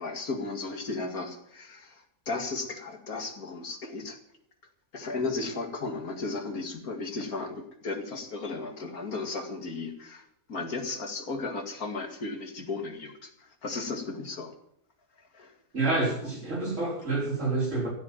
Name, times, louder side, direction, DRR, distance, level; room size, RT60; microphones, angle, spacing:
voice 1, 0.0-4.2 4.9-14.5 15.3-15.5, left 3 dB, 80° left, 5 dB, 2.7 m, -35 dB
voice 2, 15.7-17.9, right 3 dB, 55° right, -2 dB, 5.3 m, -28 dB
15.5 x 8.0 x 8.9 m, 0.71 s
omnidirectional pair, 1.5 m